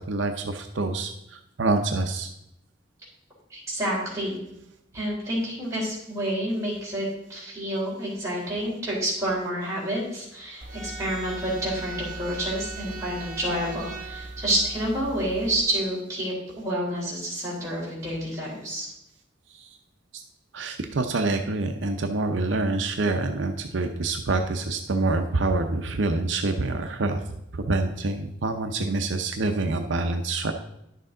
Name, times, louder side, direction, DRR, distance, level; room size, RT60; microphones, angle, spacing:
voice 1, 0.1-2.3 19.5-19.8 20.1-20.2 20.5-27.2 27.5-30.5, right 2 dB, 75° right, 5 dB, 0.7 m, -26 dB
voice 2, 3.5-4.4 4.9-18.9, right 1 dB, 15° right, -7 dB, 3.8 m, -29 dB
sound 1, 10.6-15.6, right 3 dB, 45° right, 1.1 m, -38 dB
11.0 x 6.7 x 3.8 m, 0.82 s
head